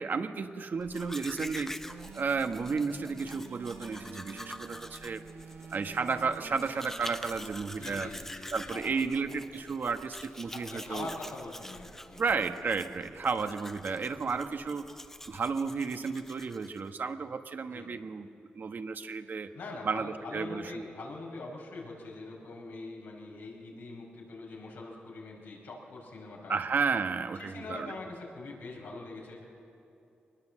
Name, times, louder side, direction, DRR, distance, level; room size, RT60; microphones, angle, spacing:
voice 1, 0.0-5.2 5.7-8.1 8.5-11.1 12.2-14.9 15.3-18.3 18.5-19.5 19.8-20.8 26.5-27.9, right 5 dB, 60° right, 7 dB, 1.2 m, -33 dB
Domestic sounds home sounds, 0.8-16.9, left 1 dB, 10° left, 0.9 m, -46 dB
sound 1, 1.8-8.4 10.2-12.6, right 7 dB, 90° right, 1.0 m, -51 dB
voice 2, 7.8-9.1 10.7-12.2 17.7-18.0 19.5-26.6 27.4-29.4, left 3 dB, 85° left, -2 dB, 5.4 m, -43 dB
23.0 x 20.0 x 7.5 m, 2.7 s
cardioid pair, 60°, 4 cm